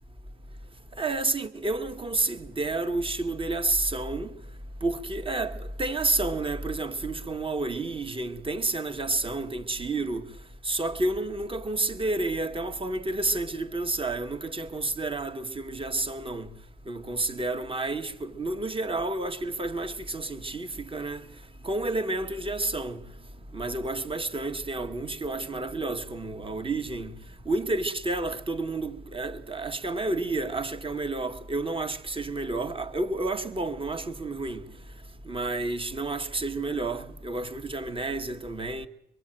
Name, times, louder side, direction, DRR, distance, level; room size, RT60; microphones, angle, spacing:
voice 1, 1.0-4.3 4.8-10.2 10.6-16.5 16.9-21.2 21.6-23.0 23.5-27.1 27.5-34.6 35.3-38.9, right 2 dB, 25° right, 2.2 m, -30 dB
25.0 x 22.0 x 9.2 m
cardioid pair, 90°, 20 cm